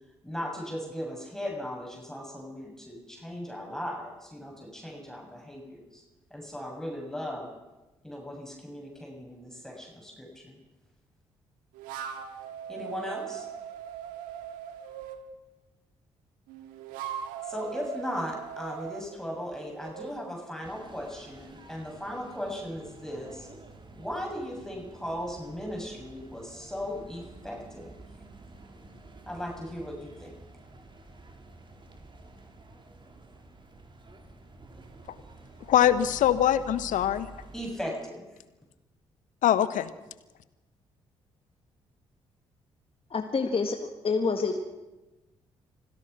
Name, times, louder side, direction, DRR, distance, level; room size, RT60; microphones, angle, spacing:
voice 1, 0.2-6.0 6.3-7.5 8.0-10.6 12.7-13.5 17.4-23.5 23.9-27.9 29.3-30.3 37.5-38.3, equal, 5° left, 0 dB, 7.4 m, -37 dB
sound 1, 11.7-15.2 16.5-20.2, right 8 dB, 75° right, 2.0 m, -40 dB
sound 2, 20.6-37.8, right 2 dB, 35° right, 4.4 m, -50 dB
voice 2, 35.7-37.3 39.4-39.9, left 11 dB, 65° left, 14 dB, 1.2 m, -23 dB
voice 3, 43.1-43.8 44.0-44.6, left 4 dB, 40° left, 6 dB, 1.9 m, -27 dB
26.0 x 16.5 x 6.1 m, 1.1 s
hypercardioid pair, 40°, 14 cm